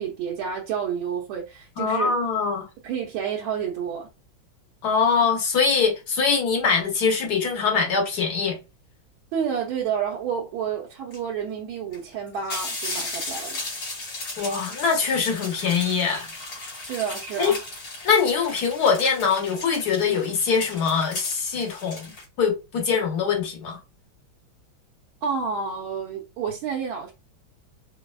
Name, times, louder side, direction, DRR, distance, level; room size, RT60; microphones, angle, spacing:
voice 1, 0.0-2.1 2.8-4.1 9.3-13.6 16.8-17.6 25.2-27.1, right 7 dB, 85° right, 1.5 m, -29 dB
voice 2, 1.8-2.7 4.8-8.6 14.4-16.3 17.4-17.6 18.0-22.1 22.4-23.8, left 5 dB, 60° left, 1.3 m, -23 dB
sound 1, 11.1-11.2 11.9-12.0 12.3-22.2, left 2 dB, 85° left, 3.1 m, -36 dB
5.3 x 2.0 x 2.2 m
omnidirectional pair, 2.2 m